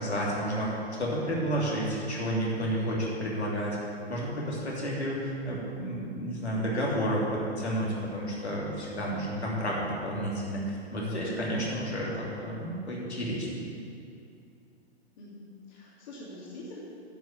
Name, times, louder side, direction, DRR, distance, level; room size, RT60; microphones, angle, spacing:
voice 1, 0.0-3.8 4.1-13.6, equal, 75° left, -5 dB, 3.0 m, -31 dB
voice 2, 15.2-16.8, left 1 dB, 45° left, -5 dB, 2.5 m, -45 dB
10.5 x 6.4 x 8.2 m, 2.5 s
figure-of-eight pair, 115°, 33 cm